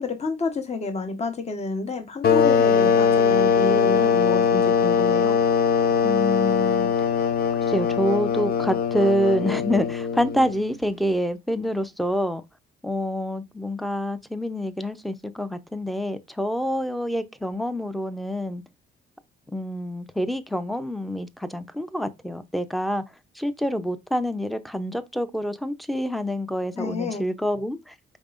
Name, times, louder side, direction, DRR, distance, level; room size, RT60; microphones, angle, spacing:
voice 1, 0.0-5.4 26.8-27.2, left 3 dB, 35° left, 1.0 m, -29 dB
sound 1, 2.2-10.6, left 6 dB, 50° left, 0.7 m, -21 dB
voice 2, 6.0-7.1 7.7-12.4 12.8-18.6 19.5-23.0 23.4-27.9, equal, ahead, 0.6 m, -27 dB
5.3 x 3.9 x 2.5 m
cardioid pair, 90°, 20 cm